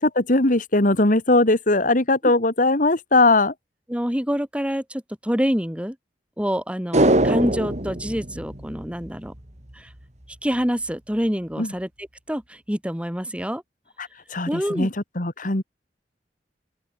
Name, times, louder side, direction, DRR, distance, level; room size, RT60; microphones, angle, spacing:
voice 1, 0.0-3.5 11.6-11.7 14.0-15.6, left 2 dB, 50° left, 2.3 m, -20 dB
voice 2, 3.9-6.0 6.4-9.3 9.7-9.9 10.4-13.6 14.5-14.9, equal, 5° right, 3.7 m, -26 dB
sound 1, 6.9-9.4 9.7-9.8, right 1 dB, 40° right, 3.7 m, -22 dB
open air
head